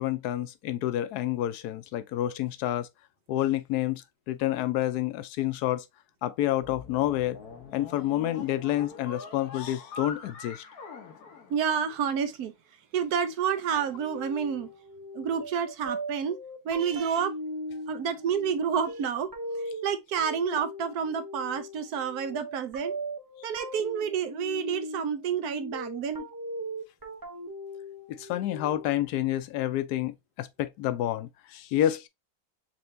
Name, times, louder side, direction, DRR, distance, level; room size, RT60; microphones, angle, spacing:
voice 1, 0.0-2.9 3.3-5.8 6.2-7.4 7.7-10.6 28.1-32.1, left 13 dB, 90° left, 1.1 m, -29 dB
sound 1, 6.6-12.1, left 4 dB, 70° left, 1.6 m, -44 dB
voice 2, 11.5-12.5 12.9-14.7 15.1-16.4 16.6-17.3 17.9-19.3 19.8-22.9 23.4-26.3, right 7 dB, 75° right, 1.2 m, -29 dB
sound 2, 13.7-29.1, equal, 25° right, 0.5 m, -39 dB
4.4 x 3.4 x 2.6 m
omnidirectional pair, 1.6 m